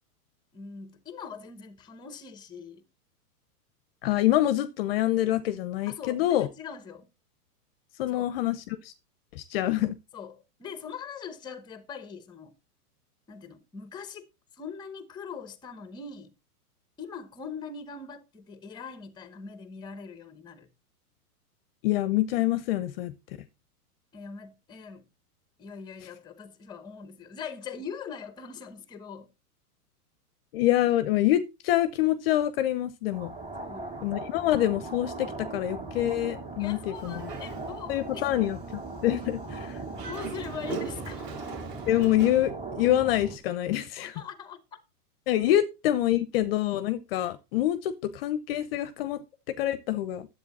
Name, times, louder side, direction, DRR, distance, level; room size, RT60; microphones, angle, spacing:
voice 1, 0.5-2.9 5.9-7.1 8.1-8.3 10.1-12.5 13.3-14.3 14.5-16.4 17.0-20.7 24.1-25.1 25.6-29.3 33.6-34.0 36.6-38.4 40.0-41.3 44.0-44.6, left 6 dB, 10° left, 0.8 m, -42 dB
voice 2, 4.0-6.5 8.0-8.9 9.3-10.0 21.8-23.1 30.5-33.3 34.0-37.2 37.9-39.8 41.9-44.2 45.3-50.3, left 13 dB, 40° left, 0.7 m, -26 dB
sound 1, 33.1-43.4, right 3 dB, 15° right, 2.2 m, -39 dB
Dog, 36.9-38.1 38.5-38.6 39.8-42.5, right 6 dB, 85° right, 2.7 m, -40 dB
10.0 x 7.9 x 4.1 m
hypercardioid pair, 145°, 47 cm